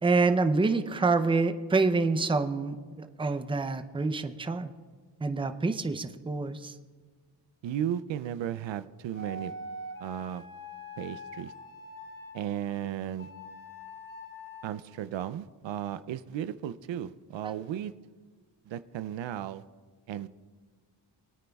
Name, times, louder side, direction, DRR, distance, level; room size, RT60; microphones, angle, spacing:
voice 1, 0.0-4.7 5.2-6.7, right 3 dB, 10° right, 9 dB, 0.5 m, -27 dB
voice 2, 7.6-9.5 10.0-10.4 11.0-11.5 12.3-13.3 14.6-17.9 18.7-19.6 20.1-20.3, right 10 dB, 80° right, 14 dB, 0.5 m, -35 dB
sound 1, 9.1-12.4 13.2-14.7, left 1 dB, 30° left, 2.6 m, -43 dB
22.0 x 9.1 x 2.3 m, 1.5 s
cardioid pair, 80°, 44 cm